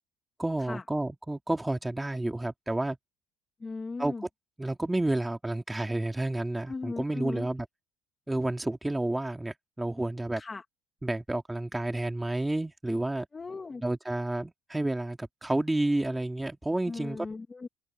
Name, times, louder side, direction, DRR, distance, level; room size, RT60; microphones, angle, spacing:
voice 1, 0.4-3.0 4.0-4.1 4.6-7.7 8.3-10.4 11.0-13.3 13.8-17.3, right 1 dB, 10° right, 2.4 m, -30 dB
voice 2, 3.6-4.2 6.7-7.5 10.4-10.6 13.3-13.8 16.9-17.7, left 4 dB, 20° left, 1.4 m, -38 dB
cardioid pair, 135°, 0 cm